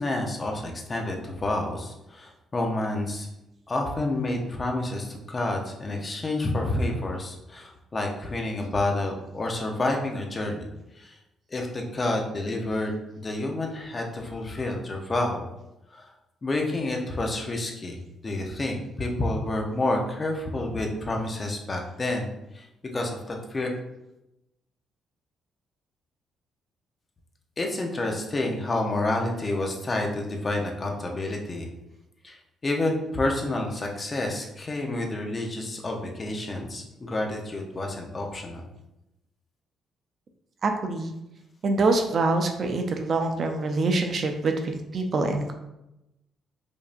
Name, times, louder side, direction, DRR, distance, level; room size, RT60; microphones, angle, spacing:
voice 1, 0.0-3.3 3.7-10.7 11.0-11.1 11.5-15.5 15.9-16.1 16.4-22.3 22.5-22.7 22.9-23.7 27.6-31.7 32.2-32.4 32.6-38.7, left 2 dB, 30° left, 1 dB, 0.7 m, -29 dB
voice 2, 40.6-41.1 41.6-45.5, right 3 dB, 50° right, 5 dB, 0.5 m, -25 dB
5.2 x 2.6 x 2.5 m, 0.91 s
cardioid pair, 90°, 0 cm